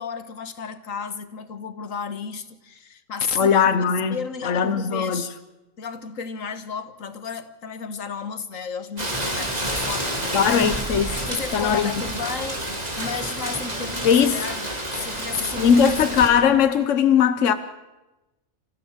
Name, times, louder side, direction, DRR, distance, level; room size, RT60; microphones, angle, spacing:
voice 1, 0.0-3.6 4.1-5.3 5.8-10.5 11.2-15.8, left 6 dB, 90° left, 1.7 m, -33 dB
voice 2, 3.4-4.2 4.4-5.2 10.3-11.2 11.5-11.9 14.0-14.4 15.6-17.5, left 7 dB, 70° left, 1.3 m, -19 dB
Rain, 9.0-16.3, right 1 dB, 30° right, 3.7 m, -29 dB
sound 1, 9.1-11.4 13.0-14.1, right 1 dB, ahead, 1.4 m, -40 dB
27.0 x 15.5 x 7.4 m
omnidirectional pair, 1.3 m